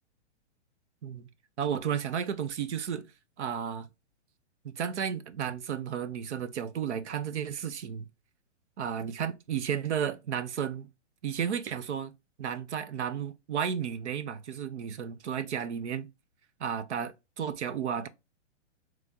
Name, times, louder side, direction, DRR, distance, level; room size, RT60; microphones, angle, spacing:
voice 1, 1.6-3.0 3.4-3.9 4.6-8.1 8.8-10.9 11.2-12.1 12.4-16.1 16.6-18.1, right 8 dB, 70° right, 0.7 m, -33 dB
3.5 x 3.2 x 3.8 m
hypercardioid pair, 175°, 36 cm